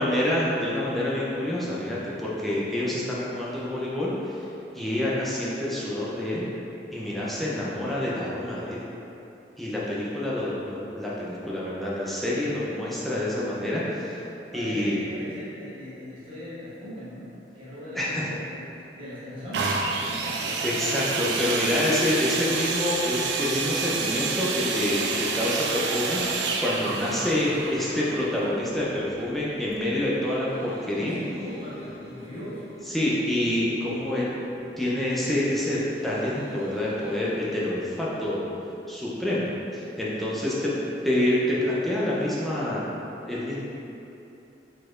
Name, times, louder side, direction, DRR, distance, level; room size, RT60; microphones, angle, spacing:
voice 1, 0.0-4.4 4.7-6.4 6.9-8.8 9.6-14.2 14.5-15.0 17.9-18.3 20.6-31.2 32.9-34.3 34.8-38.4 38.9-40.7 41.0-42.9 43.2-43.6, left 1 dB, ahead, -8 dB, 0.5 m, -27 dB
voice 2, 14.5-17.3 17.5-21.5 31.0-32.6, left 1 dB, 30° right, -11 dB, 1.3 m, -40 dB
sound 1, 19.5-29.2 29.9-30.0, right 4 dB, 70° right, 0.4 m, -29 dB
sound 2, 27.8-38.3, equal, 85° left, 1.4 m, -45 dB
4.7 x 4.2 x 2.4 m, 2.9 s
head